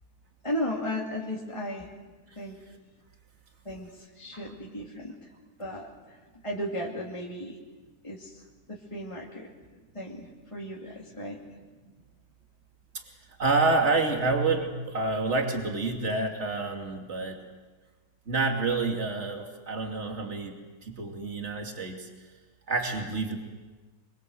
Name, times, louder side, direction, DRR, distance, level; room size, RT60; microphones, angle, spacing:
voice 1, 0.4-1.9 2.4-2.6 3.6-5.3 5.6-5.9 6.4-7.6 8.0-8.3 8.7-9.5 9.9-11.4, equal, 20° left, -3 dB, 2.5 m, -35 dB
voice 2, 13.4-17.4 18.3-20.5 20.8-22.1 22.7-23.4, right 3 dB, 45° right, 2 dB, 2.9 m, -28 dB
24.5 x 24.5 x 7.9 m, 1.3 s
omnidirectional pair, 1.7 m